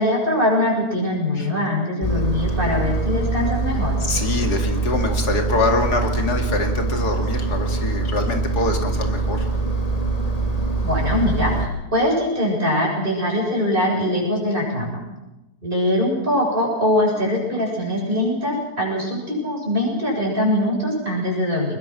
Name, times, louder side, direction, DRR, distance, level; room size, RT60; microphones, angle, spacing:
voice 1, 0.0-3.9 10.8-15.0 15.6-21.8, left 1 dB, 30° right, -1 dB, 7.3 m, -22 dB
voice 2, 2.0-2.3 4.0-9.5, left 3 dB, 80° left, 4 dB, 2.9 m, -25 dB
Engine, 2.0-11.7, right 3 dB, 25° left, 2.5 m, -23 dB
22.5 x 21.0 x 6.2 m, 0.98 s
omnidirectional pair, 1.7 m